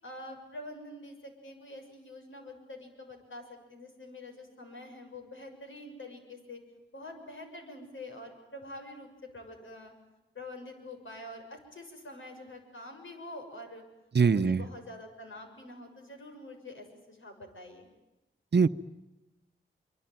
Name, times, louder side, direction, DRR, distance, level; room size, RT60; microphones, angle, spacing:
voice 1, 0.0-6.6 6.9-9.9 10.3-13.8 14.2-17.9, left 1 dB, 70° left, 4 dB, 6.8 m, -46 dB
voice 2, 14.1-14.6 18.5-18.7, right 5 dB, 55° right, 13 dB, 0.9 m, -22 dB
25.5 x 24.0 x 9.2 m, 0.97 s
cardioid pair, 45°, 21 cm